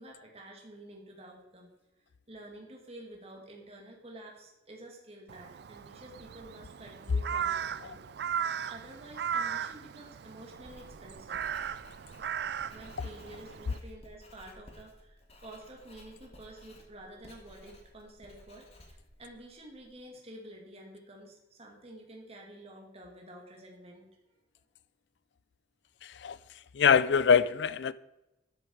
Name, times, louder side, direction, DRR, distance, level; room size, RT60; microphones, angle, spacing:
voice 1, 0.0-1.7 2.3-8.0 8.3-11.4 12.7-24.1, right 1 dB, 35° right, 2.4 m, -50 dB
Crow, 5.3-13.8, right 8 dB, 65° right, 0.4 m, -37 dB
Writing, 10.5-19.9, left 1 dB, 35° left, 1.7 m, -55 dB
voice 2, 26.0-26.4 26.7-27.9, left 6 dB, 75° left, 0.4 m, -24 dB
12.0 x 7.0 x 4.7 m
head